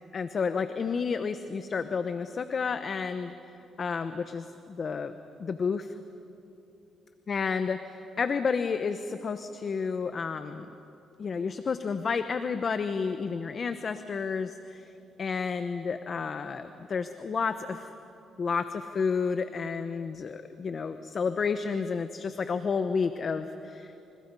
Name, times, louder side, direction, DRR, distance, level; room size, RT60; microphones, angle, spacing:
voice 1, 0.1-3.3 3.8-5.1 5.4-6.0 7.3-10.7 11.2-14.9 15.2-17.9 18.4-23.9, left 5 dB, 45° left, 10 dB, 0.9 m, -31 dB
29.5 x 28.5 x 5.5 m, 2.9 s
cardioid pair, 90°, 0 cm